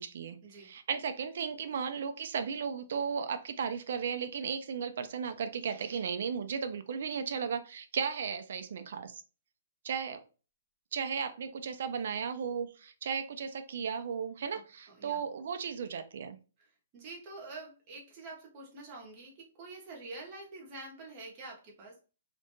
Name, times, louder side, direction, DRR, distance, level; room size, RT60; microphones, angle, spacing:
voice 1, 0.0-9.2 9.8-10.2 10.9-16.4, right 6 dB, 50° right, 9 dB, 0.3 m, -35 dB
voice 2, 14.9-15.2 16.9-22.0, right 3 dB, 20° right, -2 dB, 0.7 m, -46 dB
2.5 x 2.1 x 2.9 m, 0.34 s
hypercardioid pair, 175°, 0 cm